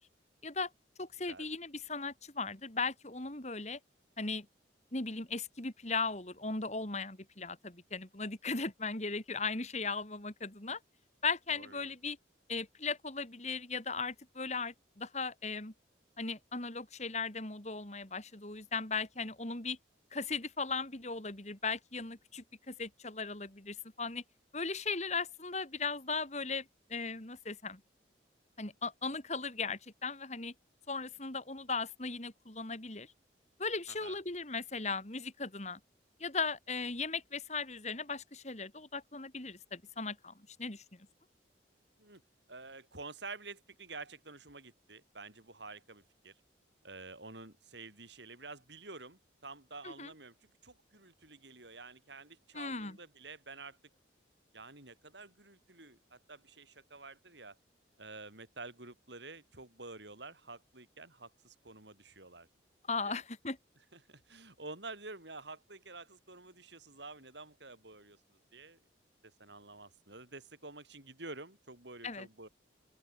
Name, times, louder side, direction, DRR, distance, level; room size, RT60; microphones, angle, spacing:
voice 1, 1.0-3.8 4.2-4.5 4.9-10.8 11.2-12.2 12.5-15.7 16.2-19.8 20.1-24.2 24.5-26.6 26.9-27.8 28.6-30.5 30.9-33.1 33.6-35.8 36.2-40.3 40.6-40.8 49.8-50.1 52.5-53.0 62.9-63.6 72.0-72.3, left 4 dB, 35° left, 2.8 m, -37 dB
voice 2, 11.5-11.9 33.9-34.2 42.0-42.2 42.5-46.3 46.8-53.8 54.5-57.6 58.0-62.5 63.0-63.2 63.9-68.8 69.2-72.5, right 3 dB, 70° right, 7.4 m, -49 dB
open air
head